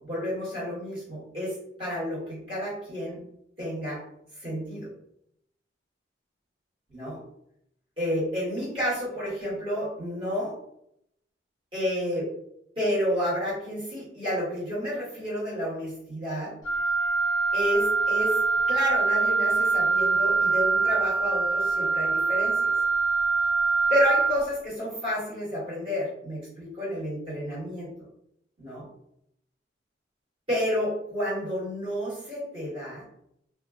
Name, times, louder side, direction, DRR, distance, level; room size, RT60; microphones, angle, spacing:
voice 1, 0.0-3.2 3.6-4.0 4.4-4.9 6.9-7.2 8.0-10.5 11.7-12.3 12.7-16.5 17.5-18.4 18.7-22.7 23.9-27.9 28.6-28.8 30.5-33.0, equal, 30° right, -9 dB, 1.4 m, -30 dB
Wind instrument woodwind instrument, 16.6-24.4, right 4 dB, 20° left, 0.5 m, -24 dB
2.4 x 2.2 x 2.3 m, 0.76 s
head